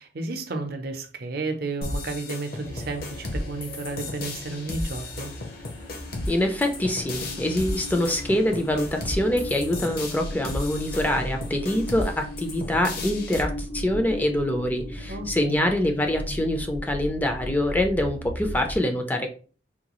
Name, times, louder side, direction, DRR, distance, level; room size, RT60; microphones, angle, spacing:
voice 1, 0.0-5.3 15.1-15.7, right 3 dB, 55° right, 0.6 m, -32 dB
sound 1, 1.8-13.4, left 2 dB, 55° left, 0.7 m, -34 dB
sound 2, 2.6-18.8, left 1 dB, 80° left, 0.8 m, -37 dB
voice 2, 6.3-19.3, left 1 dB, 10° left, 0.4 m, -25 dB
3.7 x 2.3 x 3.0 m
head